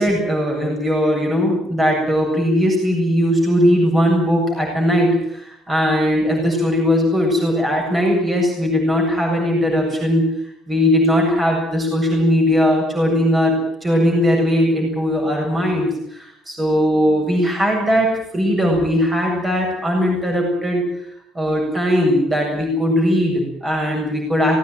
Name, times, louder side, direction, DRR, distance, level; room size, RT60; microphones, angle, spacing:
voice 1, 0.0-10.3 10.7-20.8 21.3-24.6, equal, 15° right, 0 dB, 7.8 m, -19 dB
19.5 x 18.0 x 9.5 m, 0.73 s
cardioid pair, 165°, 0 cm